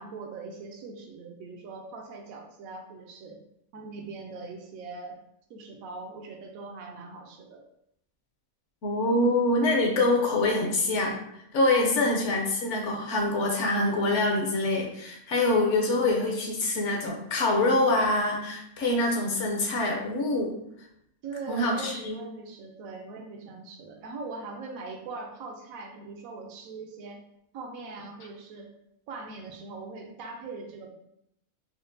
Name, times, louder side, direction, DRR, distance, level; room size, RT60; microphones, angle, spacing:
voice 1, 0.0-3.4 3.7-5.2 5.5-7.6 11.7-12.2 21.2-27.2 27.5-28.7 29.1-30.9, right 3 dB, 80° right, 1 dB, 1.0 m, -41 dB
voice 2, 8.8-11.2 11.5-20.5 21.5-22.2, left 2 dB, 65° left, 0 dB, 0.9 m, -25 dB
4.3 x 2.1 x 2.6 m, 0.77 s
omnidirectional pair, 1.5 m